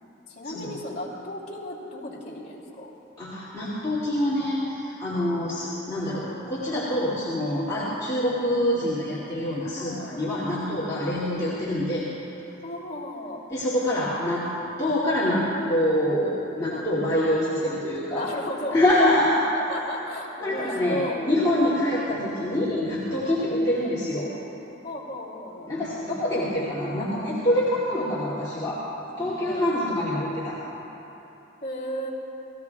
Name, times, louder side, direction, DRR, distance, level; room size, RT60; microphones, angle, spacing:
voice 1, 0.3-2.9 7.7-8.0 9.8-10.4 11.0-11.1 12.6-13.5 16.6-16.8 18.1-18.8 19.5-21.2 21.8-21.9 23.2-23.5 24.8-25.7 29.1-29.7 31.6-32.1, left 1 dB, 35° left, -5 dB, 2.8 m, -35 dB
voice 2, 3.2-12.1 13.5-14.5 14.8-18.3 18.7-19.4 20.4-24.3 25.7-28.8 29.2-30.6, left 1 dB, 20° left, -11 dB, 2.4 m, -25 dB
29.0 x 18.5 x 2.4 m, 3.0 s
head